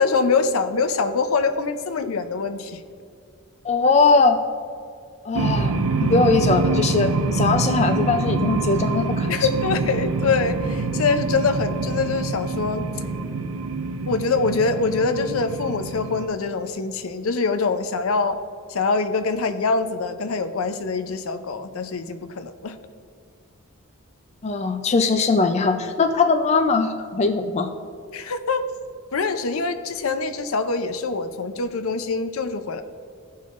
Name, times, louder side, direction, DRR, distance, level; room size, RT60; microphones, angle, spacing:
voice 1, 0.0-2.8 9.3-12.9 14.1-18.4 18.7-22.8 28.1-28.6 29.1-32.8, left 4 dB, 85° left, 9 dB, 0.6 m, -24 dB
voice 2, 3.6-4.4 5.3-5.7 6.0-9.3 24.4-27.7, left 4 dB, 30° left, 6 dB, 0.4 m, -20 dB
sound 1, 5.3-16.3, right 3 dB, 90° right, 0.5 m, -25 dB
15.5 x 5.6 x 2.5 m, 2.3 s
head